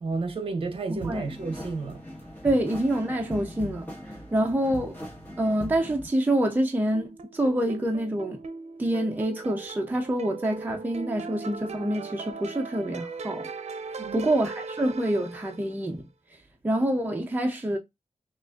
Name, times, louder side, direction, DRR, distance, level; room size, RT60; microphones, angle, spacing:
voice 1, 0.0-2.0 14.0-14.3, right 3 dB, 50° right, 0.9 m, -31 dB
voice 2, 0.9-1.3 2.4-3.9 4.3-4.9 5.4-8.4 8.8-13.5 14.1-16.1 16.6-17.8, right 1 dB, 15° right, 0.6 m, -26 dB
sound 1, 1.0-6.1, equal, 15° left, 1.5 m, -40 dB
sound 2, 6.9-15.8, right 4 dB, 70° right, 0.6 m, -39 dB
6.2 x 2.5 x 2.4 m
wide cardioid pair, 175°, 12 cm